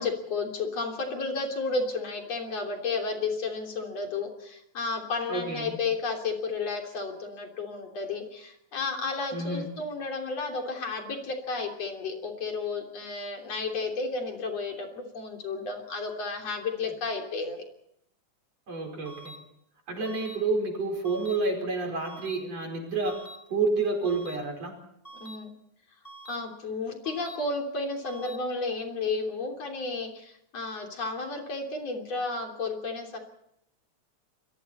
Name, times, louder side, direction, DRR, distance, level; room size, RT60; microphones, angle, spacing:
voice 1, 0.0-17.6 25.1-25.5 26.3-33.2, left 3 dB, 60° left, 2 dB, 4.3 m, -32 dB
voice 2, 5.3-5.8 9.3-9.7 18.7-19.4 19.9-23.2 23.5-24.8, right 3 dB, 60° right, 2 dB, 6.0 m, -29 dB
sound 1, 19.1-19.4 20.1-20.4 21.1-21.4 22.1-22.4 23.1-23.4 24.1-24.4 25.1-25.4 26.1-26.4 27.1-27.4 28.1-28.4, right 1 dB, 20° left, 4.1 m, -45 dB
29.5 x 22.5 x 4.3 m, 0.75 s
omnidirectional pair, 3.4 m